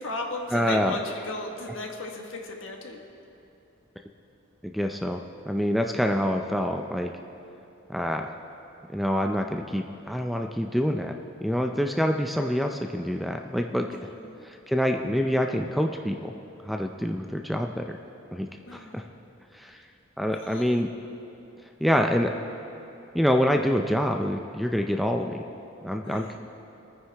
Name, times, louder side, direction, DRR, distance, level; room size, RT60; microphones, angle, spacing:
voice 1, 0.0-3.0 13.9-14.4 18.7-19.1 20.4-20.8 26.0-26.4, left 2 dB, 65° left, 2 dB, 1.4 m, -36 dB
voice 2, 0.5-1.0 4.6-7.1 7.9-8.3 8.9-11.1 11.4-13.9 14.4-16.3 16.7-18.0 18.3-19.0 19.5-19.8 20.2-20.9 21.8-22.3 23.1-25.4 25.8-26.4, equal, ahead, 3 dB, 0.4 m, -26 dB
24.0 x 9.5 x 3.4 m, 2.9 s
head